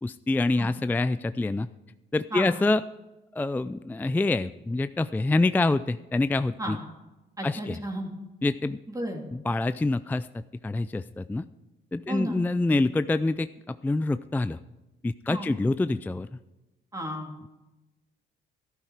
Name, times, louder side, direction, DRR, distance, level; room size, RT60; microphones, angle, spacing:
voice 1, 0.0-1.7 2.1-2.8 3.3-6.8 7.4-7.8 8.4-8.8 9.3-10.3 10.6-11.5 11.9-14.6 15.0-16.4, left 2 dB, 10° left, 13 dB, 0.3 m, -26 dB
voice 2, 7.4-8.1 8.9-9.2 12.1-12.4 15.3-15.5 16.9-17.3, right 1 dB, 15° right, 1 dB, 2.9 m, -33 dB
13.0 x 11.5 x 4.9 m, 1.0 s
cardioid pair, 90°, 20 cm